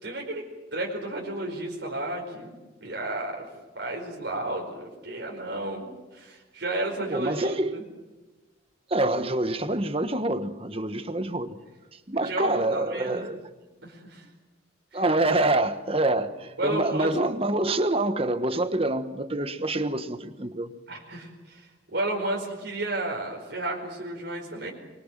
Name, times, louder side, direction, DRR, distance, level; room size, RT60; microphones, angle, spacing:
voice 1, 0.0-3.5 3.7-7.8 12.1-13.2 13.8-14.2 14.9-15.0 16.6-17.1 20.9-24.7, right 2 dB, 60° right, 4.8 m, -33 dB
voice 2, 7.1-7.8 8.9-11.6 11.9-13.5 14.9-20.7, right 2 dB, 30° right, 1.4 m, -26 dB
24.5 x 24.0 x 7.6 m
head